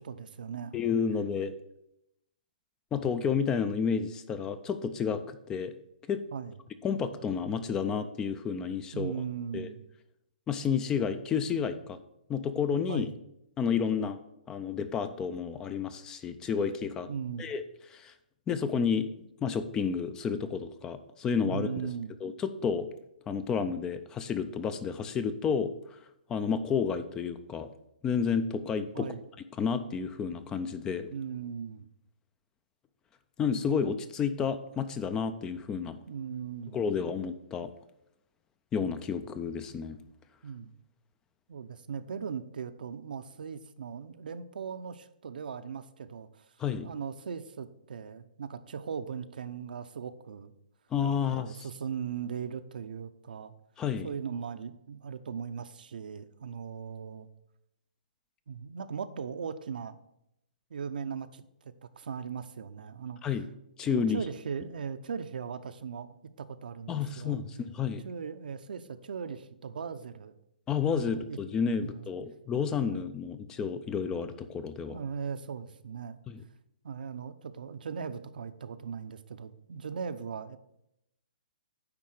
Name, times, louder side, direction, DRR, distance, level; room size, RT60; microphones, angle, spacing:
voice 1, 0.1-0.8 6.3-6.6 8.9-9.8 12.9-13.1 17.1-17.5 21.5-22.1 28.9-29.2 31.1-31.9 36.1-37.0 40.4-40.7 41.5-46.4 46.8-50.5 51.2-53.5 54.0-57.3 58.5-60.0 60.7-63.2 63.8-67.4 68.0-70.3 70.9-71.4 71.8-72.1 72.9-73.0 74.8-76.2 76.8-80.6, right 6 dB, 75° right, 10 dB, 0.7 m, -38 dB
voice 2, 0.7-1.5 2.9-5.7 6.1-6.2 6.8-9.1 9.5-9.7 10.5-12.0 12.3-13.1 13.6-14.2 14.5-17.1 17.4-17.6 17.9-18.1 18.5-19.1 19.4-21.7 22.2-22.9 23.3-26.0 26.3-27.7 28.0-29.1 29.6-31.1 33.4-36.0 36.7-37.7 38.7-40.0 46.6-46.9 50.9-51.6 53.8-54.1 63.2-63.4 63.8-64.2 66.9-68.0 70.7-75.0 76.3-76.4, left 6 dB, 15° left, 12 dB, 0.4 m, -30 dB
9.7 x 3.8 x 6.4 m, 0.82 s
hypercardioid pair, 155°, 5 cm